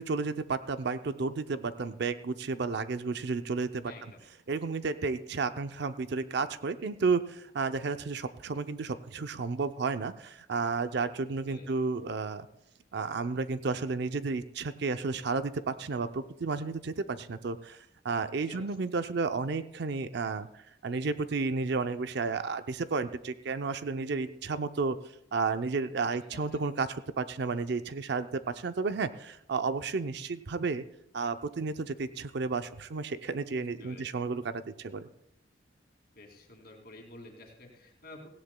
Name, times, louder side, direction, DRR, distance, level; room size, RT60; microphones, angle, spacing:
voice 1, 0.0-3.9 4.5-12.5 12.9-17.8 18.0-20.5 20.8-25.0 25.3-30.8 31.1-35.1, right 4 dB, 60° right, 11 dB, 0.5 m, -32 dB
voice 2, 3.8-4.2 11.5-11.7 18.5-18.7 26.3-26.6 33.5-34.0 36.2-38.3, left 2 dB, 55° left, 2 dB, 2.4 m, -50 dB
17.0 x 16.0 x 2.2 m, 0.80 s
head